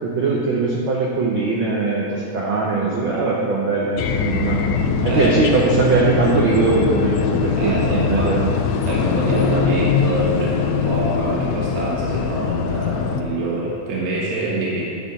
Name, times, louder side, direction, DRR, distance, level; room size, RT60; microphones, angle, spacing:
voice 1, 0.0-4.6 5.0-8.5, right 3 dB, 90° right, -3 dB, 1.0 m, -20 dB
sound 1, 4.0-13.2, left 6 dB, 80° left, 1.5 m, -22 dB
voice 2, 7.6-8.3 8.9-14.8, right 1 dB, 65° right, -6 dB, 2.4 m, -25 dB
10.0 x 4.5 x 6.9 m, 2.5 s
omnidirectional pair, 3.5 m